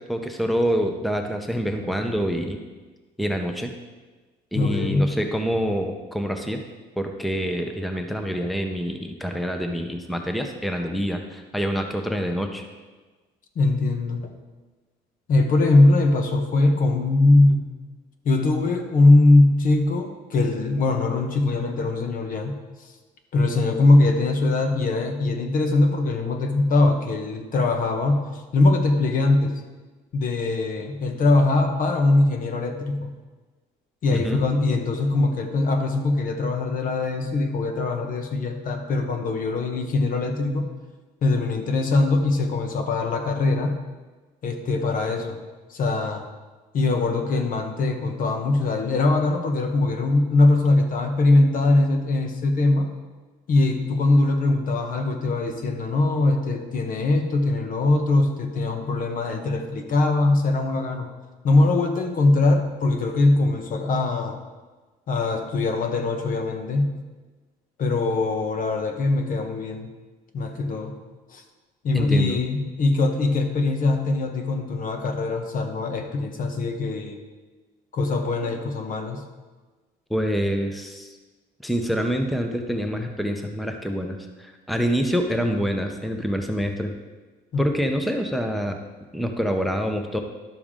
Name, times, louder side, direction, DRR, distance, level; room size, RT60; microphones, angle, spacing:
voice 1, 0.1-2.6 3.2-3.7 4.5-6.6 7.0-12.6 34.1-34.4 71.9-72.4 80.1-81.1 81.6-86.9 87.6-88.8 89.1-90.2, equal, ahead, 5 dB, 0.7 m, -26 dB
voice 2, 4.5-5.1 13.5-14.3 15.3-17.7 18.2-22.6 23.3-28.2 28.5-29.6 30.1-33.1 34.0-40.7 41.2-43.8 44.4-45.4 45.7-46.3 46.7-52.9 53.5-61.1 61.4-64.4 65.1-66.9 67.8-69.9 70.3-70.9 71.3-71.4 71.8-77.2 77.9-79.3 87.5-87.6, left 2 dB, 55° left, 6 dB, 1.1 m, -21 dB
11.5 x 6.9 x 3.7 m, 1.3 s
cardioid pair, 110°, 17 cm